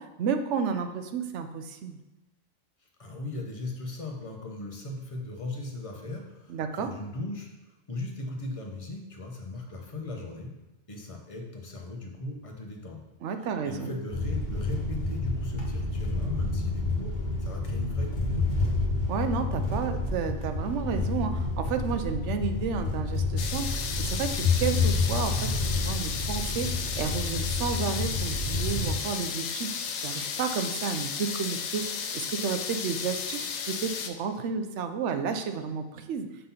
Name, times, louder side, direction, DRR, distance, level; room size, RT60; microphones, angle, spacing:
voice 1, 0.0-2.0 6.5-6.9 13.2-14.0 19.1-36.3, right 6 dB, 75° right, 8 dB, 0.9 m, -32 dB
voice 2, 2.8-10.5 10.9-13.0 13.4-18.4, left 2 dB, 30° left, 1 dB, 0.9 m, -38 dB
sound 1, 14.1-28.9, left 3 dB, 55° left, 1.4 m, -29 dB
sound 2, 23.4-34.1, left 6 dB, 70° left, 0.9 m, -34 dB
5.5 x 4.0 x 5.6 m, 1.0 s
omnidirectional pair, 1.2 m